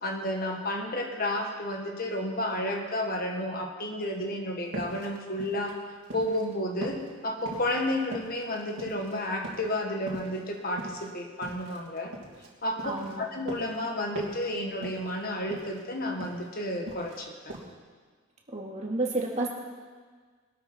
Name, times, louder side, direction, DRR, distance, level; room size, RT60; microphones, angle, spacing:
voice 1, 0.0-5.7 6.1-7.0 7.2-12.1 12.6-12.9 13.2-17.5, left 1 dB, 45° left, 2 dB, 1.7 m, -31 dB
sound 1, 4.7-6.5 6.8-9.2 9.4-9.8 10.1-12.5 12.8-13.9 14.1-14.5 14.8-15.2 15.5-16.5 16.7-17.2 17.5-17.7, right 1 dB, 60° right, 2.9 m, -41 dB
voice 2, 12.8-13.2 18.5-19.5, right 2 dB, 35° right, -1 dB, 2.4 m, -30 dB
21.0 x 12.5 x 4.5 m, 1.5 s
head